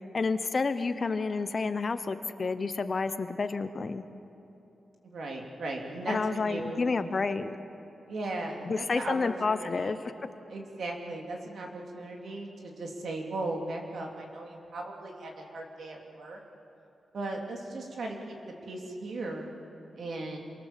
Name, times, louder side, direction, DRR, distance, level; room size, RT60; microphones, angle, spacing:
voice 1, 0.1-4.0 6.1-7.5 8.6-10.1, left 4 dB, 35° left, 10 dB, 0.9 m, -30 dB
voice 2, 5.0-6.9 8.1-9.9 10.5-16.4 17.1-18.4 18.7-19.5 20.0-20.4, right 2 dB, 65° right, 1 dB, 3.4 m, -37 dB
27.5 x 23.5 x 7.6 m, 3.0 s
wide cardioid pair, 160°, 0 cm